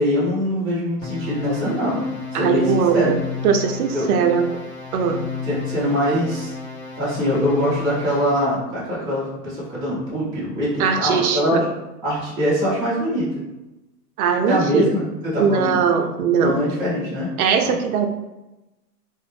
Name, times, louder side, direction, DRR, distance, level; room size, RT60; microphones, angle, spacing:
voice 1, 0.0-2.0 2.3-3.1 3.9-4.1 5.4-6.5 7.0-11.6 12.0-13.3 14.4-15.8 16.4-17.3, equal, 10° right, -12 dB, 0.4 m, -23 dB
sound 1, 1.0-8.6, left 5 dB, 20° left, 0.7 m, -32 dB
voice 2, 2.3-3.2 3.4-4.5 4.9-5.2 10.8-11.6 14.2-15.0 15.4-16.6 17.4-18.1, right 6 dB, 60° right, 6 dB, 0.5 m, -20 dB
2.5 x 2.0 x 3.0 m, 1.0 s
hypercardioid pair, 135°, 49 cm